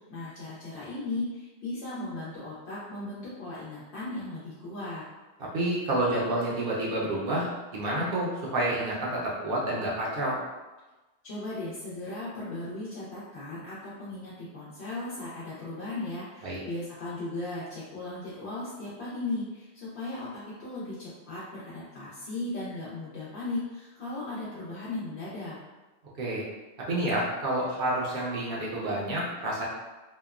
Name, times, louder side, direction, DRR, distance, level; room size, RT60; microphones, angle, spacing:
voice 1, 0.1-5.0 11.2-25.6, left 2 dB, 80° left, -8 dB, 0.9 m, -37 dB
voice 2, 5.4-10.4 16.4-16.6 26.2-26.4 26.9-29.6, right 1 dB, 65° right, -5 dB, 0.7 m, -29 dB
2.8 x 2.1 x 2.3 m, 1.2 s
omnidirectional pair, 1.1 m